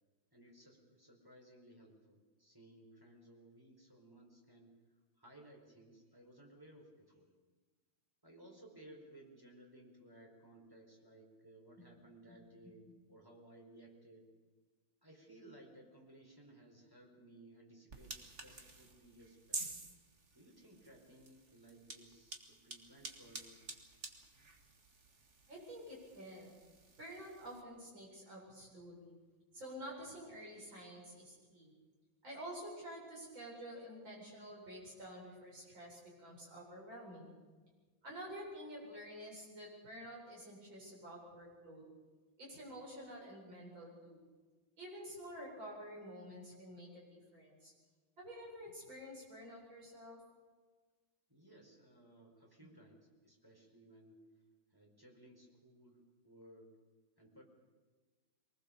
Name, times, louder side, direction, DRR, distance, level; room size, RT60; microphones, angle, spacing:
voice 1, 0.3-4.7 5.2-7.3 8.2-14.3 15.0-19.8 20.3-23.6 51.3-54.3 54.7-56.8 57.2-57.4, right 1 dB, 10° right, 0 dB, 4.8 m, -60 dB
sound 1, 17.9-27.6, right 3 dB, 35° right, 2.3 m, -50 dB
voice 2, 25.5-26.6 27.0-29.2 29.5-31.7 32.2-37.3 38.0-41.8 42.4-44.2 44.8-47.7 48.2-50.2, equal, 75° right, -3 dB, 8.9 m, -49 dB
23.5 x 20.0 x 7.1 m, 1.4 s
omnidirectional pair, 2.1 m